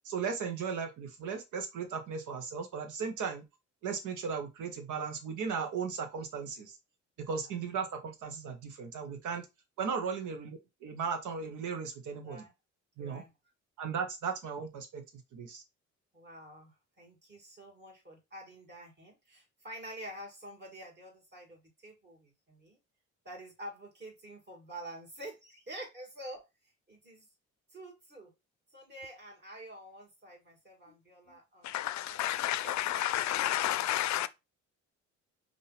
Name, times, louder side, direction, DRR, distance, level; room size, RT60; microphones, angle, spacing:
voice 1, 0.0-3.4 3.8-6.8 7.2-9.5 9.8-12.4 13.0-13.2 13.8-15.0 15.3-15.6, right 6 dB, 80° right, 1.2 m, -36 dB
voice 2, 7.2-7.5 9.9-10.1 12.2-12.5 13.0-13.3 16.1-22.8 23.2-26.4 26.9-27.3 27.7-28.3 28.7-31.7 32.1-34.2, right 1 dB, 35° right, 2.6 m, -48 dB
voice 3, 31.6-34.3, left 14 dB, 65° left, 0.5 m, -31 dB
5.3 x 2.9 x 3.4 m
cardioid pair, 90°, 30 cm